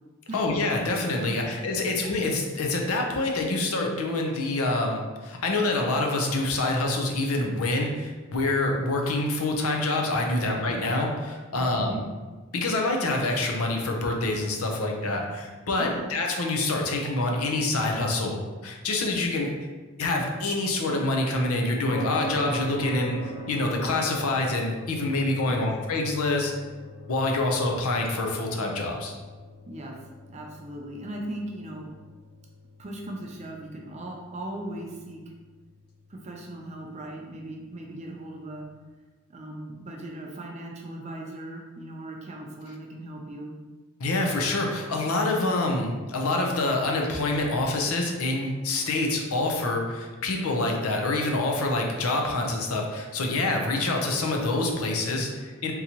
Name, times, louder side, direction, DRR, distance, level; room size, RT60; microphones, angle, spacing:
voice 1, 0.3-12.0 12.5-19.5 20.0-26.5 27.1-29.1 44.0-55.7, left 2 dB, 85° left, 1 dB, 0.6 m, -26 dB
voice 2, 1.3-1.6 1.8-1.9 10.2-10.6 11.5-12.0 15.7-16.1 25.4-25.7 29.7-30.0 30.3-31.9 32.8-35.2 36.1-38.6 39.3-43.5, right 1 dB, 30° right, 0 dB, 0.5 m, -38 dB
sound 1, 21.9-38.4, equal, 45° left, 1.4 m, -42 dB
3.7 x 2.8 x 2.9 m, 1.3 s
head